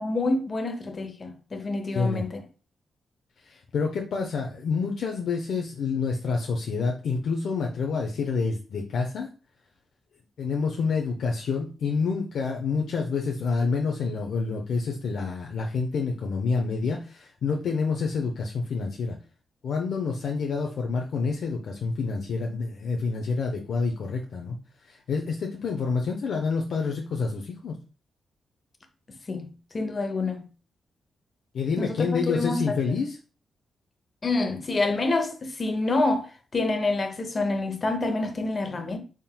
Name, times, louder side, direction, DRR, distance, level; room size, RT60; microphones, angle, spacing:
voice 1, 0.0-2.4 29.3-29.5 29.7-30.5 31.8-32.8 34.2-39.0, left 2 dB, 35° left, 0.7 m, -27 dB
voice 2, 1.9-2.3 3.4-9.3 10.4-19.2 19.6-24.6 24.9-27.8 31.5-33.2, left 4 dB, 75° left, 0.5 m, -28 dB
4.2 x 3.6 x 2.2 m
cardioid pair, 120°, 0 cm